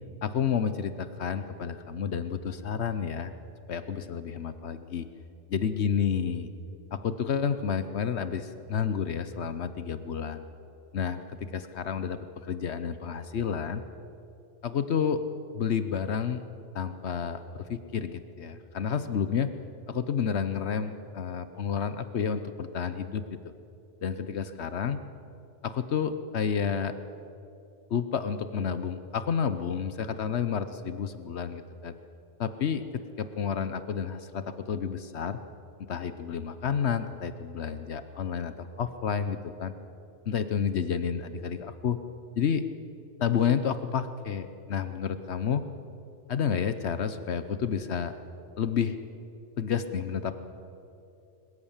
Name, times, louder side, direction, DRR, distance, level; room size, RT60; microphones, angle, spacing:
voice 1, 0.2-3.3 3.7-5.0 5.5-6.5 6.9-10.4 10.9-13.8 14.6-15.2 15.5-16.4 16.7-19.5 19.9-23.4 24.0-25.0 25.6-27.0 27.9-31.9 32.4-35.4 35.8-39.7 40.3-42.0 42.4-42.6 43.2-45.6 46.3-48.1 48.6-49.0 49.6-50.3, left 7 dB, 70° left, 11 dB, 1.1 m, -30 dB
22.5 x 21.5 x 7.3 m, 2.7 s
omnidirectional pair, 1.2 m